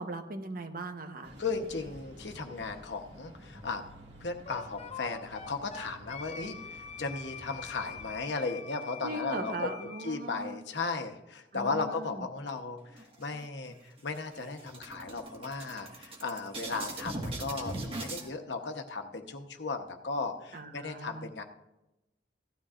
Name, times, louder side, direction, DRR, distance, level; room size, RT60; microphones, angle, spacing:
voice 1, 0.0-1.3 9.0-10.6 11.5-12.3 20.5-21.3, right 2 dB, 55° right, 6 dB, 1.0 m, -39 dB
sound 1, 1.2-8.2, equal, 85° right, 2.0 m, -51 dB
voice 2, 1.4-3.8 4.2-9.7 10.0-21.4, left 4 dB, 90° left, 5 dB, 1.0 m, -36 dB
Wind instrument woodwind instrument, 4.5-10.1, left 6 dB, 35° left, 0.6 m, -45 dB
sound 2, 12.9-13.7 14.1-14.2 14.5-18.3, right 2 dB, 35° right, 1.6 m, -40 dB
16.0 x 12.5 x 2.5 m, 0.94 s
head